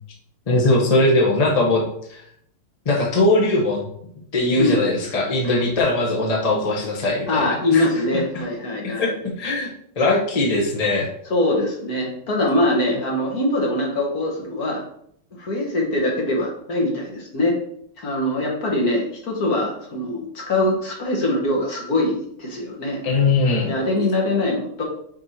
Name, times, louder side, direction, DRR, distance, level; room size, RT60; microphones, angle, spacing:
voice 1, 0.5-1.8 2.1-2.2 2.8-3.9 4.3-7.9 8.8-9.7 10.0-11.1 23.0-23.7, left 2 dB, 25° left, -2 dB, 0.9 m, -20 dB
voice 2, 7.3-9.1 11.3-14.8 15.4-17.6 18.0-23.0 23.6-24.8, left 1 dB, 50° left, -1 dB, 1.8 m, -22 dB
5.2 x 4.7 x 4.3 m, 0.67 s
omnidirectional pair, 2.2 m